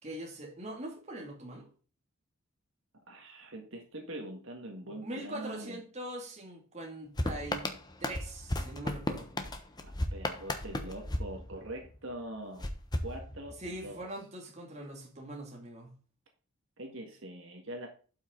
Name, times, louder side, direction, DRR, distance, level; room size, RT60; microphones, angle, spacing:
voice 1, 0.0-1.7 4.8-7.7 8.0-9.3 13.6-16.0, right 1 dB, 30° right, 2.6 m, -42 dB
voice 2, 3.1-5.8 9.8-12.7 13.0-14.0 16.8-17.9, right 1 dB, 60° right, 1.9 m, -43 dB
sound 1, 7.2-12.0 12.6-13.8, left 1 dB, 20° left, 1.0 m, -35 dB
12.0 x 5.9 x 3.9 m
head